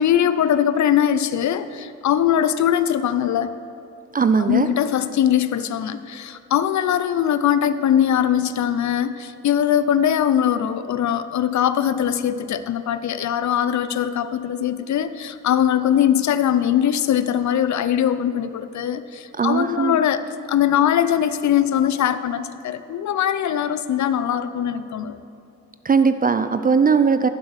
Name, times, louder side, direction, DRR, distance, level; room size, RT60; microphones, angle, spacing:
voice 1, 0.0-3.5 4.4-20.2 20.5-25.2, left 10 dB, 45° left, 13 dB, 0.5 m, -21 dB
voice 2, 4.1-4.7 19.4-20.0 25.8-27.3, right 5 dB, 25° right, 11 dB, 0.4 m, -18 dB
11.5 x 10.5 x 3.2 m, 2.8 s
hypercardioid pair, 40°, 40 cm